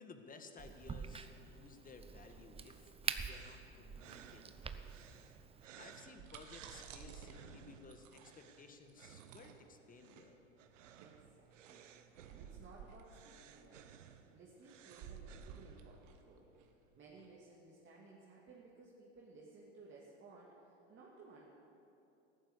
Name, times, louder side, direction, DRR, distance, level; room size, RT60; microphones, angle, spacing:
voice 1, 0.0-5.1 5.7-10.4, left 4 dB, 25° left, 6 dB, 1.7 m, -57 dB
Crack, 0.6-5.7, right 5 dB, 15° right, 0.8 m, -46 dB
sound 1, 3.3-16.2, right 9 dB, 90° right, 1.0 m, -59 dB
sound 2, 6.1-17.3, right 7 dB, 55° right, 1.8 m, -55 dB
voice 2, 11.0-13.9 14.3-16.5 17.0-21.5, right 3 dB, 30° right, -4 dB, 2.7 m, -59 dB
14.5 x 11.5 x 8.2 m, 2.9 s
hypercardioid pair, 95°, 36 cm